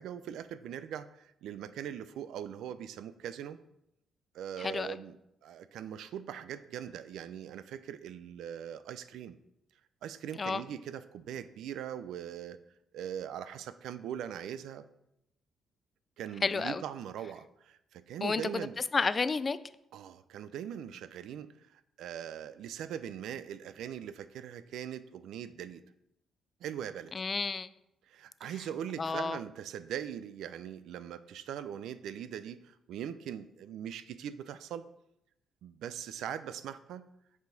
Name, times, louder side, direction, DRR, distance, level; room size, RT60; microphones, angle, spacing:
voice 1, 0.0-3.6 4.3-5.2 5.4-9.4 10.0-12.6 12.9-14.8 16.2-18.7 19.9-25.8 26.6-27.1 28.1-34.8 35.6-37.0, right 9 dB, 80° right, 13 dB, 0.4 m, -41 dB
voice 2, 16.4-16.8 18.2-18.7 18.9-19.6 27.1-27.7 29.0-29.4, left 4 dB, 35° left, 15 dB, 0.3 m, -31 dB
8.0 x 5.0 x 3.9 m, 0.81 s
cardioid pair, 90°, 0 cm